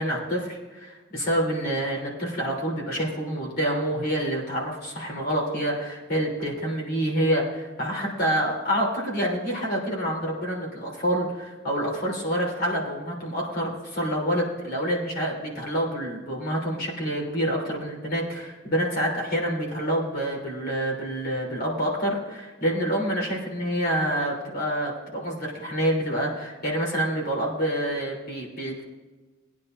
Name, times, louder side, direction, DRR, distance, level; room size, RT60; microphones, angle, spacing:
voice 1, 0.0-28.8, equal, 50° left, -2 dB, 3.4 m, -27 dB
20.0 x 9.7 x 2.6 m, 1.3 s
head